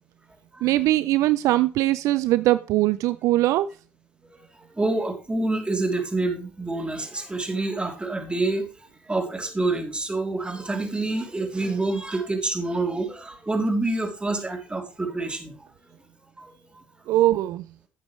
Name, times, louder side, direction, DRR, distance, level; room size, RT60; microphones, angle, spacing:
voice 1, 0.6-3.7 17.1-17.7, right 16 dB, 70° right, 0.4 m, -21 dB
voice 2, 4.6-15.5 16.4-16.5, right 2 dB, 20° right, 3.0 m, -27 dB
12.0 x 8.1 x 3.2 m
hypercardioid pair, 60°, 6 cm